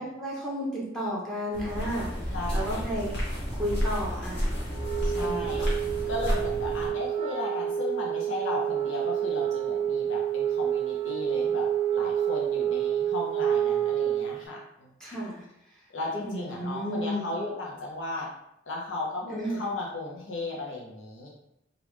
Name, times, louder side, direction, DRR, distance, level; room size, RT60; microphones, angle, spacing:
voice 1, 0.0-4.5 5.2-5.6 15.0-15.4 16.2-17.3 19.3-19.6, equal, 5° left, -6 dB, 0.7 m, -33 dB
sound 1, 1.5-6.9, equal, 60° left, 1.1 m, -31 dB
voice 2, 2.3-2.8 5.0-5.7 6.1-14.9 15.9-18.3 18.7-21.3, left 2 dB, 85° left, -3 dB, 0.7 m, -35 dB
Wind instrument woodwind instrument, 4.7-14.4, right 10 dB, 30° right, 0.4 m, -28 dB
3.3 x 2.4 x 3.1 m, 0.82 s
head